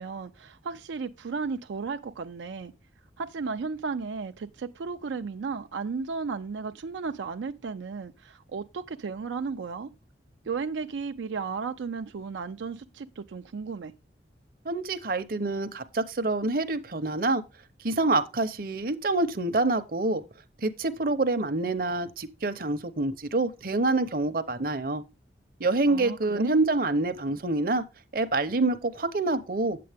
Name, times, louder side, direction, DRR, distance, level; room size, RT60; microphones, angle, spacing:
voice 1, 0.0-2.7 3.2-9.9 10.5-13.9 25.9-26.6, right 5 dB, 85° right, 0.4 m, -34 dB
voice 2, 14.6-17.4 17.8-20.2 20.6-25.0 25.6-27.8 28.1-29.8, right 2 dB, 50° right, 0.7 m, -26 dB
8.6 x 7.6 x 3.4 m
head